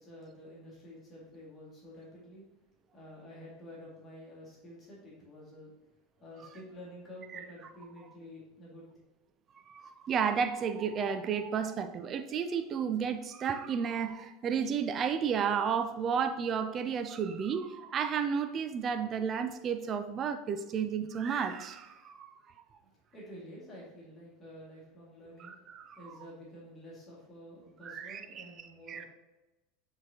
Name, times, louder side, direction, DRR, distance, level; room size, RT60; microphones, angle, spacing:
voice 1, 0.0-2.4 2.9-5.7 6.2-8.8 22.8-29.1, equal, 25° left, -5 dB, 2.1 m, -50 dB
voice 2, 9.5-22.3 25.4-26.1 27.8-29.0, right 7 dB, 30° right, 8 dB, 0.4 m, -32 dB
8.6 x 3.8 x 2.9 m, 1.0 s
figure-of-eight pair, 80°, 0 cm